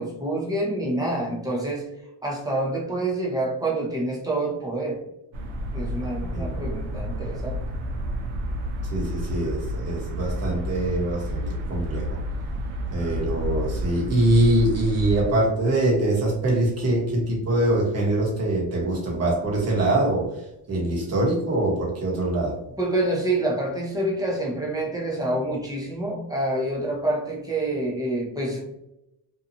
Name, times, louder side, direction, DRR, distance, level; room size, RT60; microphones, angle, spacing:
voice 1, 0.0-1.8 2.2-5.0 5.7-7.6 22.8-28.6, right 1 dB, 10° right, -3 dB, 0.6 m, -27 dB
sound 1, 5.3-15.3, equal, 80° right, 0.6 m, -30 dB
voice 2, 8.8-12.2 12.9-22.6, right 1 dB, 30° right, -3 dB, 1.1 m, -23 dB
2.7 x 2.3 x 2.6 m, 0.86 s
cardioid pair, 120°, 47 cm